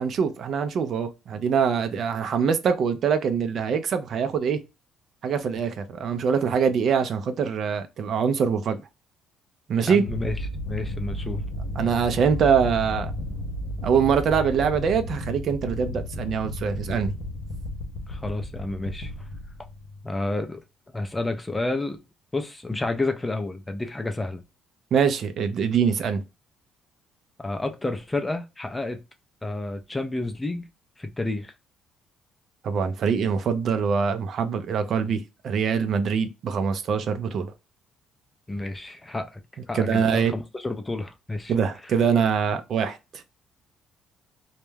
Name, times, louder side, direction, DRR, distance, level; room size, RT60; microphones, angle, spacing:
voice 1, 0.0-4.6 5.2-8.8 9.7-10.0 11.8-13.1 13.8-17.1 24.9-26.2 32.6-37.5 39.7-40.3 41.5-43.2, right 6 dB, 55° right, 0.4 m, -24 dB
voice 2, 9.8-10.4 10.7-11.4 18.1-19.1 20.0-20.6 20.9-22.0 22.3-24.4 27.4-29.0 29.4-30.7 31.0-31.5 38.5-39.4 39.7-41.5, left 2 dB, 15° left, 0.4 m, -30 dB
sound 1, 10.1-20.2, left 1 dB, 75° left, 0.4 m, -33 dB
2.2 x 2.1 x 3.1 m
cardioid pair, 120°, 0 cm